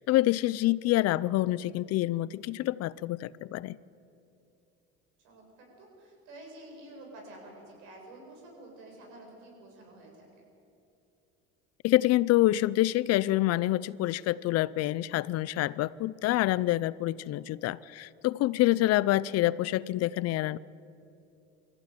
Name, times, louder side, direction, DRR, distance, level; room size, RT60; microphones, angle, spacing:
voice 1, 0.0-3.8 11.8-20.6, left 16 dB, 50° left, 0.5 m, -27 dB
voice 2, 5.2-10.5, right 1 dB, 85° right, 7.4 m, -50 dB
24.5 x 14.5 x 9.5 m
cardioid pair, 125°, 31 cm